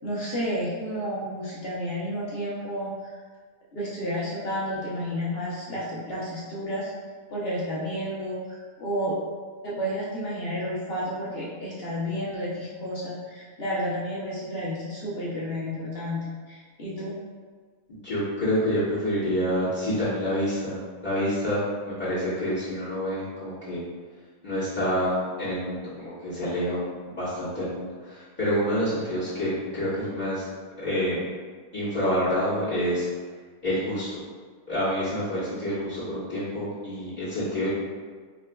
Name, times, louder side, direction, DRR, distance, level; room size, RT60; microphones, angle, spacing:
voice 1, 0.0-3.1 3.7-6.9 7.3-9.2 9.6-17.1, equal, 50° left, -7 dB, 0.8 m, -31 dB
voice 2, 17.9-20.8 21.0-23.8 24.4-30.5 30.8-31.2 31.7-33.0 33.6-34.2 34.7-37.7, equal, 30° left, -13 dB, 1.4 m, -27 dB
5.0 x 2.3 x 2.2 m, 1.5 s
omnidirectional pair, 1.5 m